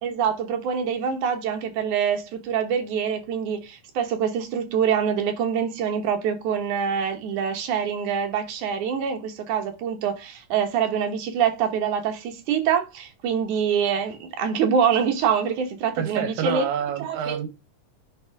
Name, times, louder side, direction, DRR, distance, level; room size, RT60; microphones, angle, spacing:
voice 1, 0.0-16.7 17.0-17.4, right 7 dB, 65° right, 2.5 m, -25 dB
voice 2, 16.0-17.5, right 8 dB, 85° right, 2.7 m, -28 dB
10.5 x 3.6 x 3.5 m
omnidirectional pair, 4.0 m